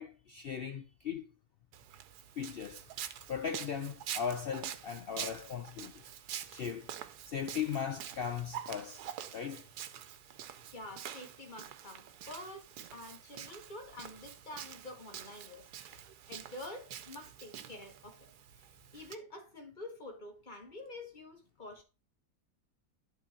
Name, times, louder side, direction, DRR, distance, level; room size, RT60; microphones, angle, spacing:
voice 1, 0.0-1.3 2.4-2.8 3.3-5.9 6.5-6.9 7.3-9.7, left 7 dB, 75° left, 0.5 m, -38 dB
Walk footsteps, 1.7-19.2, right 10 dB, 90° right, 1.3 m, -46 dB
voice 2, 10.7-18.3 18.9-21.8, left 2 dB, 30° left, 1.6 m, -48 dB
11.5 x 3.9 x 4.3 m
omnidirectional pair, 1.6 m